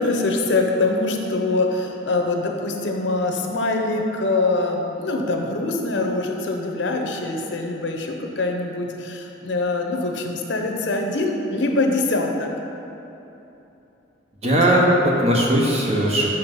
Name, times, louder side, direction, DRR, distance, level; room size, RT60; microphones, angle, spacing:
voice 1, 0.0-12.5, left 2 dB, 80° left, 3 dB, 0.8 m, -23 dB
voice 2, 14.4-16.3, right 1 dB, 35° right, -3 dB, 1.1 m, -18 dB
6.5 x 5.6 x 5.4 m, 2.9 s
head